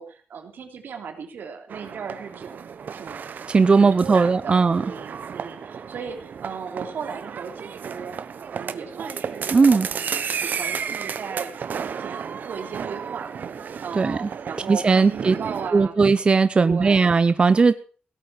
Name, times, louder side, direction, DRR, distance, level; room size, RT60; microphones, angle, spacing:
voice 1, 0.0-3.3 3.7-8.2 8.5-16.0 16.6-17.1, right 6 dB, 90° right, 4 dB, 3.3 m, -36 dB
sound 1, 1.7-15.7, right 7 dB, 65° right, 1.1 m, -33 dB
voice 2, 3.5-4.8 9.5-9.9 14.0-14.3 14.7-15.4 15.7-17.7, right 4 dB, 30° right, 12 dB, 0.6 m, -18 dB
17.0 x 8.6 x 7.2 m, 0.42 s
wide cardioid pair, 155°, 3 cm